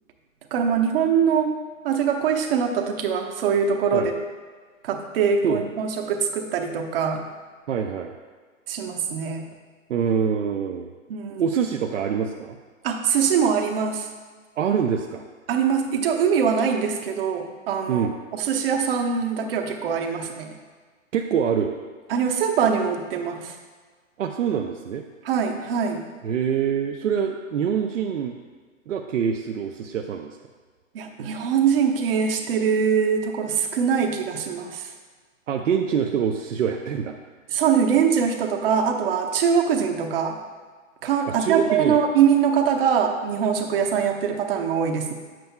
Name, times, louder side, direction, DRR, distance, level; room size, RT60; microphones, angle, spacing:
voice 1, 0.5-1.6 1.8-4.1 4.8-7.2 8.7-9.4 11.1-11.5 12.8-14.1 15.5-18.1 18.3-20.5 22.1-23.5 25.2-26.1 30.9-34.9 37.5-40.4 41.0-45.1, right 7 dB, 45° right, 3 dB, 1.0 m, -23 dB
voice 2, 7.7-8.1 9.9-10.9 11.4-12.6 14.6-15.2 17.9-18.1 21.1-21.7 24.2-25.0 26.2-28.4 28.9-30.3 35.5-37.2 41.3-42.0, right 7 dB, 70° right, 2 dB, 0.6 m, -25 dB
9.3 x 7.6 x 2.2 m, 1.5 s
hypercardioid pair, 135°, 39 cm